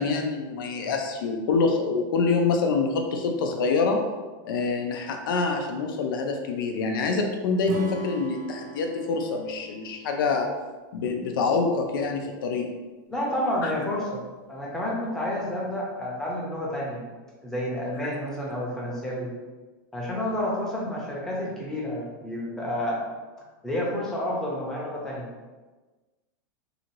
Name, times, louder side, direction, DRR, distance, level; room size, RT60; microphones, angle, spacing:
voice 1, 0.0-4.0 4.4-10.5 10.9-12.7 13.6-13.7, left 4 dB, 80° left, 3 dB, 0.5 m, -26 dB
Acoustic guitar / Strum, 7.6-10.9, right 2 dB, 55° right, 0.4 m, -37 dB
voice 2, 13.1-14.2 14.5-17.0 17.4-19.3 19.9-23.0 23.6-25.3, left 1 dB, 5° left, -5 dB, 0.7 m, -30 dB
2.8 x 2.5 x 2.9 m, 1.3 s
supercardioid pair, 145°, 11 cm